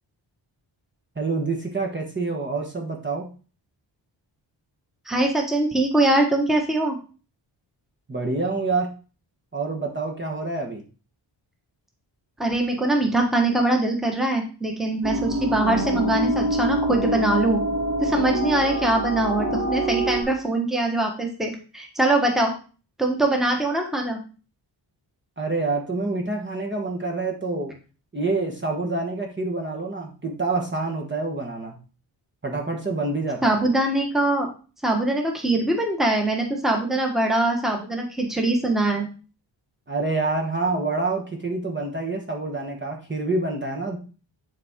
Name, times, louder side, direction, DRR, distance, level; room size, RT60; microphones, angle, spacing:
voice 1, 1.1-3.3 8.1-8.9 9.5-10.8 25.4-27.7 28.1-31.8 32.4-33.6 39.9-44.0, right 3 dB, 25° right, 1 dB, 1.4 m, -27 dB
voice 2, 5.1-7.0 12.4-17.6 18.0-22.5 23.0-24.2 33.4-34.5 34.8-39.1, right 2 dB, ahead, 1 dB, 1.5 m, -22 dB
sound 1, 15.0-20.2, right 1 dB, 45° right, 2.8 m, -25 dB
10.0 x 4.2 x 3.7 m, 0.36 s
wide cardioid pair, 110°, 46 cm